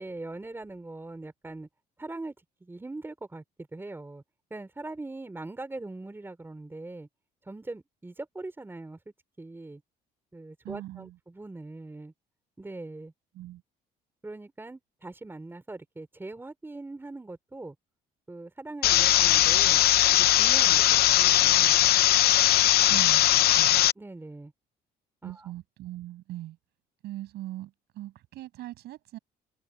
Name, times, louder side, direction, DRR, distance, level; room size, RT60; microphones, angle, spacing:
voice 1, 0.0-1.7 2.0-2.3 2.6-3.4 3.7-4.2 4.5-7.1 7.4-9.0 9.4-9.8 10.3-12.1 12.6-13.1 14.2-17.8 18.3-19.8 20.1-21.9 22.9-23.0 23.2-23.5 24.0-24.5 25.2-25.5, right 2 dB, 15° right, 3.8 m, -41 dB
voice 2, 10.6-11.2 13.3-13.6 22.9-23.9 25.2-26.6 27.0-29.2, right 15 dB, 75° right, 7.0 m, -40 dB
sound 1, 18.8-23.9, left 14 dB, 65° left, 0.8 m, -20 dB
cardioid pair, 110°, 17 cm